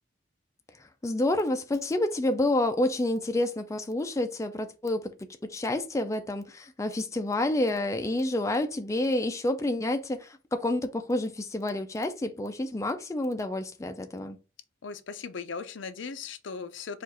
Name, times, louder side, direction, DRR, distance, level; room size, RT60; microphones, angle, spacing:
voice 1, 1.0-5.1 5.4-14.4, left 1 dB, 15° left, 0.4 m, -29 dB
voice 2, 14.8-17.0, left 5 dB, 85° left, 0.6 m, -38 dB
4.7 x 2.5 x 4.1 m
head